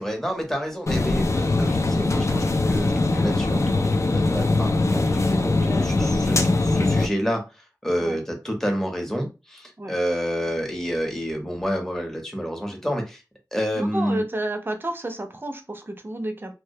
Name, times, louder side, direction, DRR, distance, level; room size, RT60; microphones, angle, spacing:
voice 1, 0.0-3.6 3.9-13.2 13.5-14.2, equal, 5° left, 0.8 m, -29 dB
sound 1, 0.9-7.1, left 2 dB, 45° left, 0.3 m, -21 dB
voice 2, 13.7-16.5, right 1 dB, 30° right, 0.5 m, -31 dB
2.2 x 2.1 x 2.6 m
wide cardioid pair, 55°, 7 cm